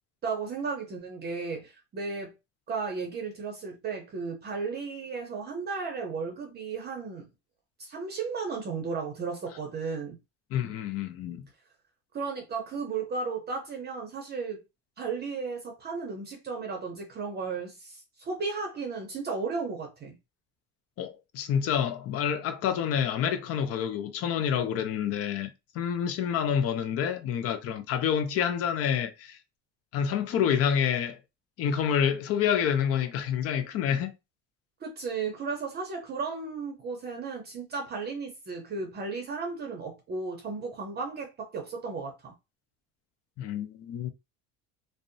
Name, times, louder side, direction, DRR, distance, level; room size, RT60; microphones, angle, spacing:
voice 1, 0.2-2.3 2.7-7.3 7.8-10.2 12.1-14.6 15.0-20.2 34.8-42.3, right 4 dB, 30° right, 0.6 m, -34 dB
voice 2, 10.5-11.4 21.0-29.4 29.9-31.2 31.6-34.1 43.4-44.1, left 8 dB, 50° left, 0.5 m, -28 dB
2.6 x 2.0 x 2.6 m
cardioid pair, 130°, 31 cm